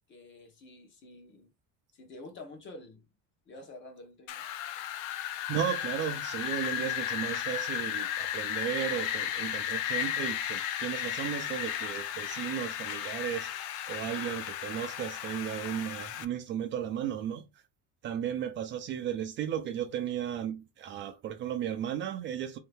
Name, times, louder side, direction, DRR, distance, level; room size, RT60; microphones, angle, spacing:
voice 1, 0.1-1.5 1.9-3.0 3.5-4.4, left 2 dB, 35° left, 0.9 m, -48 dB
Wind, 4.3-16.2, left 10 dB, 90° left, 0.6 m, -34 dB
voice 2, 5.5-13.5 13.9-17.4 18.0-22.6, right 10 dB, 35° right, 0.4 m, -35 dB
3.8 x 2.8 x 3.4 m
cardioid pair, 175°, 33 cm